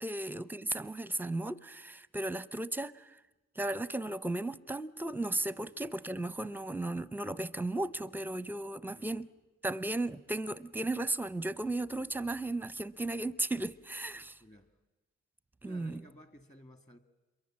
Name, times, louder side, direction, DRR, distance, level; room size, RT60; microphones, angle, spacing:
voice 1, 0.0-3.2 3.6-9.3 9.6-14.4 15.6-16.0, right 2 dB, 5° right, 0.7 m, -35 dB
voice 2, 8.9-9.2 14.4-14.7 15.6-17.0, equal, 25° left, 2.1 m, -55 dB
27.5 x 23.0 x 7.5 m
cardioid pair, 90°, 30 cm